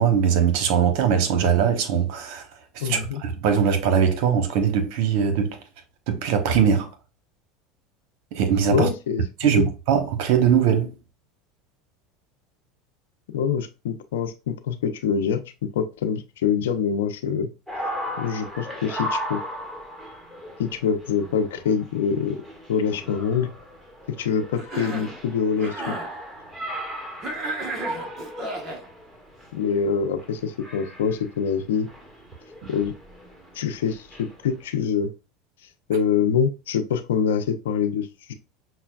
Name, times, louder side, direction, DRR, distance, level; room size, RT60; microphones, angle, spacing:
voice 1, 0.0-2.5 2.7-5.6 6.1-6.9 8.3-8.9 9.4-11.0, right 7 dB, 65° right, 1.0 m, -21 dB
voice 2, 2.8-3.2 8.7-9.7 13.3-15.4 15.7-17.5 18.2-19.4 20.6-22.4 22.7-23.5 24.1-26.0 29.5-31.9 32.7-32.9 33.5-35.1 35.9-38.3, left 7 dB, 90° left, 0.6 m, -25 dB
sound 1, 17.7-34.7, equal, 10° right, 1.6 m, -37 dB
Cough, 24.6-25.2 25.5-26.1 27.2-28.8, right 2 dB, 40° right, 1.2 m, -33 dB
5.9 x 2.2 x 2.3 m
supercardioid pair, 105°, 0 cm